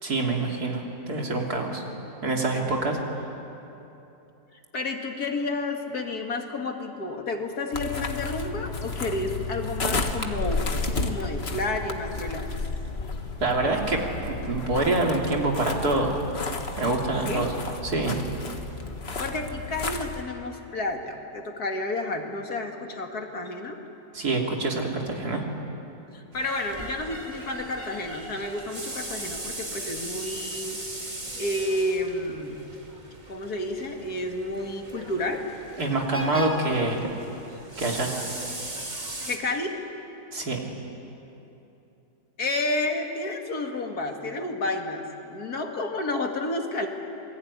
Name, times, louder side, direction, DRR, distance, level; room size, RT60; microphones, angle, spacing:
voice 1, 0.0-1.8 2.2-3.0 13.4-16.2 16.8-17.5 17.8-18.2 24.1-25.4 35.8-37.0 37.8-38.1 40.3-40.6, right 2 dB, 70° right, 0 dB, 3.6 m, -26 dB
voice 2, 4.5-10.6 11.0-12.4 17.2-17.5 19.2-23.8 26.1-31.1 31.4-32.6 33.3-35.4 36.3-36.8 39.2-39.8 42.4-46.9, left 2 dB, 70° left, 3 dB, 2.6 m, -31 dB
sound 1, 7.7-20.2, left 3 dB, 40° left, 1.7 m, -32 dB
sound 2, 26.3-39.4, right 1 dB, 25° right, 2.7 m, -38 dB
27.0 x 22.0 x 9.8 m, 3.0 s
omnidirectional pair, 1.7 m